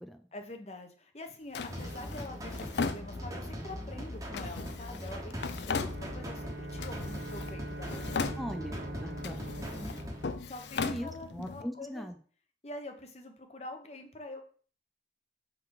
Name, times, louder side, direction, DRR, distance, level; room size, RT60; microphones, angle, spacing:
voice 1, 0.3-8.4 9.6-10.0 10.5-12.1 12.6-14.4, left 2 dB, 35° left, 5 dB, 0.9 m, -45 dB
Drawer open or close, 1.5-3.6 4.3-6.4 6.8-7.6 7.8-8.8 9.2-11.6, left 4 dB, 70° left, 0.5 m, -38 dB
sound 1, 1.7-10.3, equal, 20° right, 1.1 m, -41 dB
Bowed string instrument, 5.6-11.2, right 1 dB, 65° right, 0.9 m, -44 dB
voice 2, 8.4-9.6 10.8-12.2, equal, ahead, 6 dB, 0.4 m, -40 dB
6.0 x 3.9 x 4.7 m, 0.42 s
head